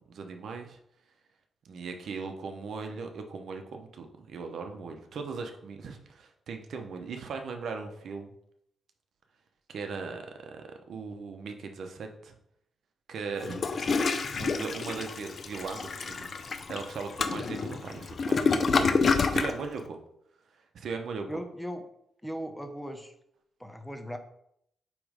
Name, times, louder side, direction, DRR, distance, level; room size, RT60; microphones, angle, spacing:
voice 1, 0.1-0.8 1.6-8.3 9.7-10.2 10.5-12.3 13.1-14.0 14.3-20.0 20.7-21.3, right 4 dB, 70° right, 5 dB, 0.9 m, -39 dB
Toilet flush, 13.4-19.6, left 4 dB, 50° left, 0.6 m, -28 dB
voice 2, 21.3-21.8 22.2-23.1 23.6-24.2, equal, 5° left, 6 dB, 0.7 m, -37 dB
8.5 x 3.2 x 5.1 m, 0.74 s
cardioid pair, 110°, 0 cm